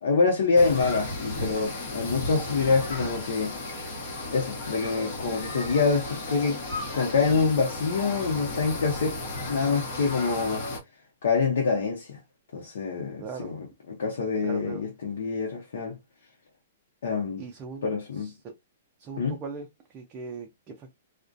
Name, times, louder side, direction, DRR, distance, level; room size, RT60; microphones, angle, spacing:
voice 1, 0.0-3.6 4.3-6.6 6.9-9.2 9.5-10.7 11.2-12.2 12.5-16.0 17.0-17.4 17.8-18.3 19.2-19.4, left 4 dB, 75° left, 0.7 m, -26 dB
sound 1, 0.6-10.8, left 2 dB, 45° left, 1.1 m, -34 dB
voice 2, 13.2-13.5 14.4-14.8 17.4-17.9 18.1-18.5 19.0-21.0, right 4 dB, 25° right, 0.4 m, -40 dB
2.3 x 2.1 x 2.5 m
hypercardioid pair, 155°, 0 cm